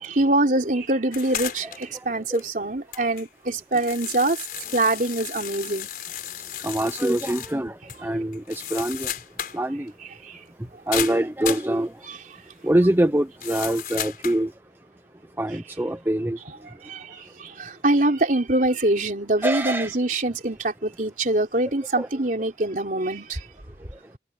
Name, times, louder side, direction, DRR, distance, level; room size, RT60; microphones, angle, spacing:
voice 1, 0.0-4.4 4.7-5.9 10.2-10.4 16.8-23.4, right 2 dB, 50° right, 3.8 m, -24 dB
sound 1, 1.1-2.0 2.3-2.4 2.9-7.6 7.9-8.0 8.3-9.6 9.9-10.0 10.9-11.7 13.4-14.4, left 10 dB, 55° left, 5.1 m, -33 dB
voice 2, 6.6-9.1 9.5-9.9 10.9-11.9 12.6-14.5 15.4-16.4 19.4-20.0 21.9-22.1, right 1 dB, 10° right, 0.7 m, -24 dB
head